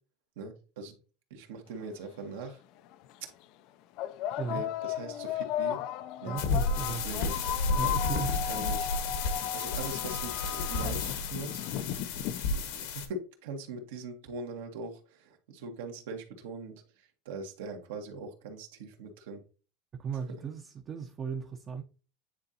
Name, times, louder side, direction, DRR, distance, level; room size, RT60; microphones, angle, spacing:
voice 1, 0.3-0.9 1.3-2.6 3.2-3.3 4.5-5.8 6.2-6.5 6.9-7.9 8.3-8.9 9.2-11.9 12.5-19.4 20.3-20.4, right 3 dB, 85° right, 1.7 m, -42 dB
sound 1, 1.9-2.0 2.9-3.1 4.0-12.9, left 11 dB, 50° left, 0.4 m, -35 dB
voice 2, 6.2-7.0 7.7-8.4 19.9-21.8, right 6 dB, 25° right, 0.6 m, -36 dB
sound 2, 6.4-13.1, left 4 dB, 75° left, 1.4 m, -32 dB
9.5 x 3.8 x 2.8 m
supercardioid pair, 150°, 0 cm